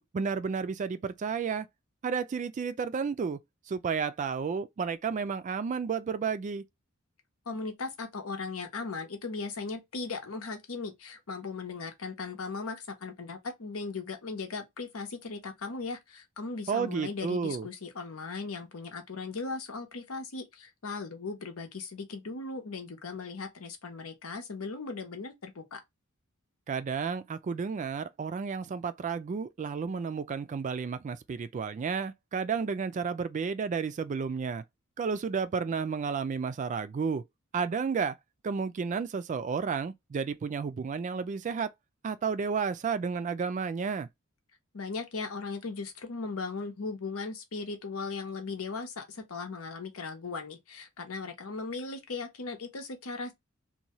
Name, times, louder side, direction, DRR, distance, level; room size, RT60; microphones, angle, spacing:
voice 1, 0.0-1.7 2.0-3.4 3.7-6.6 16.7-17.7 26.7-34.6 35.0-37.2 37.5-38.1 38.4-41.7 42.0-44.1, right 5 dB, 35° right, 0.3 m, -32 dB
voice 2, 7.5-25.8 44.7-53.3, left 4 dB, 85° left, 0.9 m, -38 dB
2.7 x 2.2 x 2.9 m
head